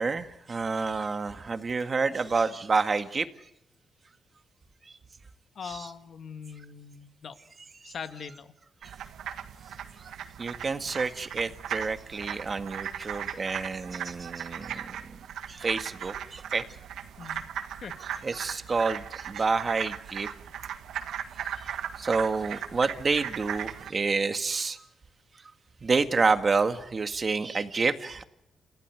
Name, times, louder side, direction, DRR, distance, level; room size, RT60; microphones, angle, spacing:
voice 1, 0.0-3.3 4.9-5.0 5.6-5.9 7.8-7.9 10.0-10.1 10.4-15.2 15.5-16.6 18.0-20.3 21.5-24.8 25.4-25.5 25.8-28.2, right 4 dB, 35° right, 8 dB, 1.8 m, -29 dB
voice 2, 5.6-7.4 7.8-8.5 17.2-17.4 17.8-18.0, left 6 dB, 60° left, 8 dB, 1.9 m, -41 dB
sound 1, 8.8-23.9, right 9 dB, 90° right, 1.6 m, -38 dB
29.5 x 16.0 x 9.5 m, 0.83 s
cardioid pair, 100°, 0 cm